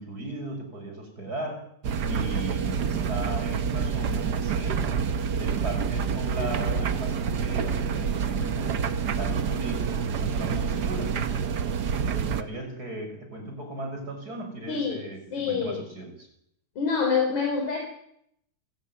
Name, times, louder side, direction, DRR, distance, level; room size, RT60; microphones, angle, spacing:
voice 1, 0.0-1.6 2.0-5.1 5.4-11.1 12.1-16.3, right 1 dB, 30° right, 3 dB, 7.0 m, -37 dB
sound 1, 1.8-12.4, right 6 dB, 75° right, 0.9 m, -27 dB
sound 2, 6.2-8.3, equal, 55° right, 8.6 m, -43 dB
voice 2, 14.7-15.0 15.3-15.8 16.8-17.8, left 5 dB, 65° left, 2 dB, 5.5 m, -26 dB
27.0 x 16.0 x 9.6 m, 0.75 s
omnidirectional pair, 3.5 m